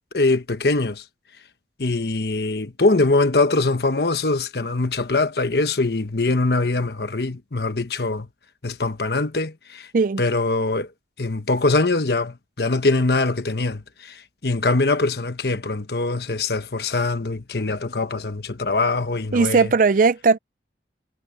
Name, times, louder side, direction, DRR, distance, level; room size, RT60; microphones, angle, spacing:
voice 1, 0.1-1.0 1.8-8.3 8.6-9.9 10.2-10.9 11.2-19.7, left 3 dB, 60° left, 1.1 m, -22 dB
voice 2, 19.3-20.4, right 4 dB, 45° right, 0.4 m, -18 dB
head